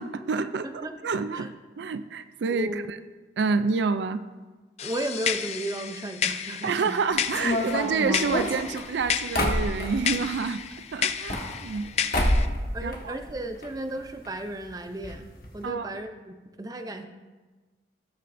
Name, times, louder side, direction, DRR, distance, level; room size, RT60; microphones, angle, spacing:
voice 1, 0.0-0.7 1.0-2.8 3.4-4.2 6.6-10.6 10.9-12.3 12.8-13.1 15.6-15.9, right 4 dB, 75° right, 12 dB, 0.4 m, -28 dB
voice 2, 0.6-1.0 1.3-1.5 2.5-2.9 4.8-7.0 12.7-15.3 15.5-17.0, right 1 dB, 20° right, 6 dB, 0.5 m, -34 dB
sound 1, 4.8-12.5, left 8 dB, 35° left, 0.4 m, -32 dB
sound 2, 7.3-10.2 11.1-11.9 12.1-12.6 12.9-13.7 13.9-14.0 14.2-14.3 15.0-15.1 15.4-15.6, left 1 dB, 50° left, 1.4 m, -27 dB
18.5 x 6.5 x 2.6 m, 1.3 s
head